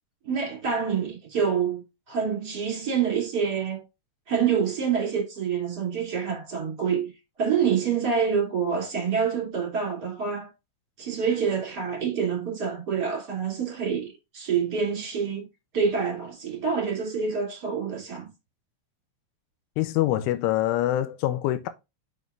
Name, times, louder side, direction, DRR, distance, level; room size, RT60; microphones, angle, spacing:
voice 1, 0.2-3.8 4.3-7.1 7.4-10.5 11.0-15.5 15.7-18.3, right 6 dB, 25° right, 2.6 m, -27 dB
voice 2, 19.8-21.7, left 14 dB, 85° left, 3.0 m, -25 dB
7.1 x 6.2 x 2.6 m
omnidirectional pair, 5.7 m